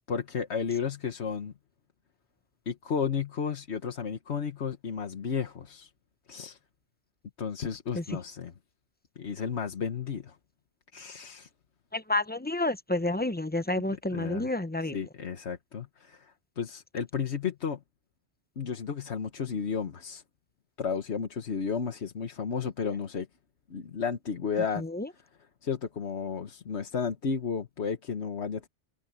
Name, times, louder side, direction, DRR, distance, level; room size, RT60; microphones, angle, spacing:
voice 1, 0.1-1.5 2.7-5.9 6.3-6.6 7.4-8.5 9.2-10.4 10.9-11.5 13.9-14.5 14.9-17.8 18.6-20.2 20.8-23.3 23.7-24.8 25.1-25.2 25.6-28.7, left 6 dB, 80° left, 1.5 m, -33 dB
voice 2, 11.9-15.0 24.8-25.1, left 2 dB, 10° left, 0.7 m, -29 dB
omnidirectional pair, 1.1 m